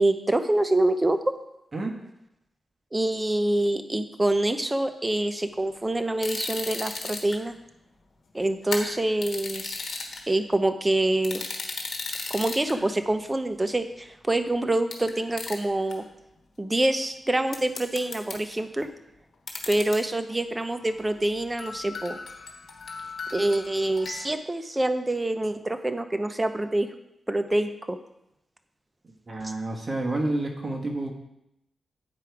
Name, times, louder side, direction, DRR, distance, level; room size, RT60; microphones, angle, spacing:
voice 1, 0.0-1.3 2.9-7.6 8.3-9.8 10.3-11.4 12.3-16.0 16.6-18.9 19.7-22.2 23.3-26.9 27.3-28.0 29.4-29.5, right 1 dB, 20° right, 9 dB, 0.7 m, -26 dB
sound 1, 6.2-7.3 8.6-10.2 11.2-12.7 13.7-13.8 14.9-15.1 15.4-15.6 15.9-16.0 17.5-18.6 19.5-20.0 20.3-20.4 20.8-21.1 21.6-24.3, left 4 dB, 65° left, 1.2 m, -35 dB
voice 2, 29.3-31.1, right 2 dB, 40° right, 1 dB, 1.4 m, -29 dB
8.7 x 4.8 x 4.7 m, 0.84 s
cardioid pair, 75°, 0 cm